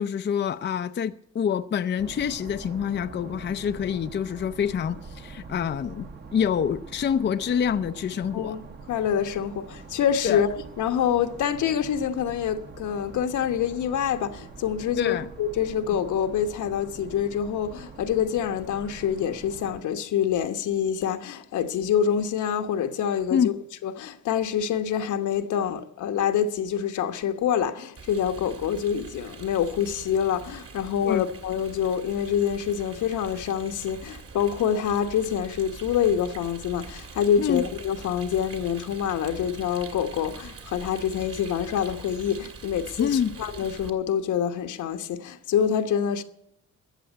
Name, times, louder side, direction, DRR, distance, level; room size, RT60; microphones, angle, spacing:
voice 1, 0.0-8.6 10.2-10.4 15.0-15.3 23.3-23.6 31.0-31.2 37.4-37.6 43.0-43.4, left 8 dB, 35° left, 0.5 m, -26 dB
sound 1, 2.0-19.8, right 4 dB, 35° right, 1.2 m, -44 dB
voice 2, 8.3-10.5 10.8-23.5 23.8-46.2, left 8 dB, 75° left, 1.2 m, -26 dB
Rain, 28.0-43.9, right 4 dB, 50° right, 2.3 m, -43 dB
13.5 x 7.7 x 9.1 m
cardioid pair, 90°, 30 cm